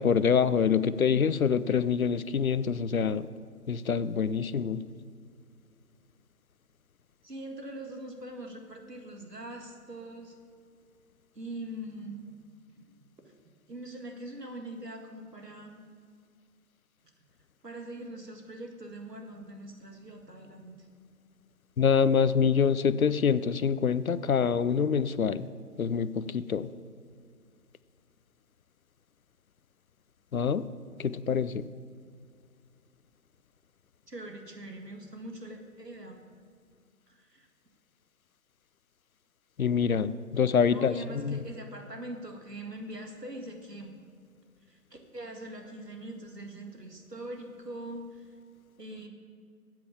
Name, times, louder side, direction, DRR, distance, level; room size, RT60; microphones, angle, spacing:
voice 1, 0.0-3.3 3.7-4.8 21.8-25.5 25.8-26.7 30.3-30.6 31.0-31.7 39.6-40.9 41.2-41.4, left 6 dB, 65° left, 16 dB, 0.5 m, -25 dB
voice 2, 7.2-10.4 11.4-12.2 13.7-15.8 17.6-20.8 34.1-36.2 37.1-37.5 40.6-43.9 44.7-48.4 48.8-49.1, right 1 dB, 85° right, 3 dB, 2.0 m, -42 dB
9.1 x 7.8 x 7.2 m, 2.1 s
figure-of-eight pair, 150°, 47 cm